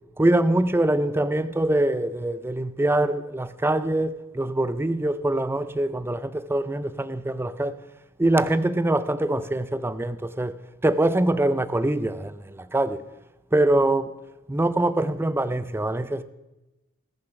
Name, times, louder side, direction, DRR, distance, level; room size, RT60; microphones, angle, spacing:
voice 1, 0.2-7.8 8.2-10.5 10.8-13.0 13.5-14.1 14.5-16.2, right 1 dB, 10° right, 0.4 m, -24 dB
20.0 x 6.9 x 5.8 m
head